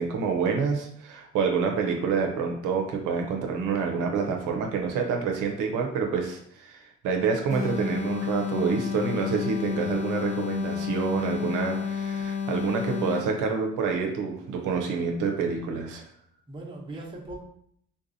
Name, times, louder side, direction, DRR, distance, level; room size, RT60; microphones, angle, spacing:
voice 1, 0.0-16.0, right 5 dB, 90° right, 2 dB, 0.6 m, -27 dB
sound 1, 7.5-13.4, left 6 dB, 25° left, 0.9 m, -30 dB
voice 2, 13.0-13.3 16.5-17.4, right 2 dB, 15° right, -4 dB, 0.9 m, -41 dB
3.6 x 2.6 x 2.6 m, 0.69 s
cardioid pair, 90°, 30 cm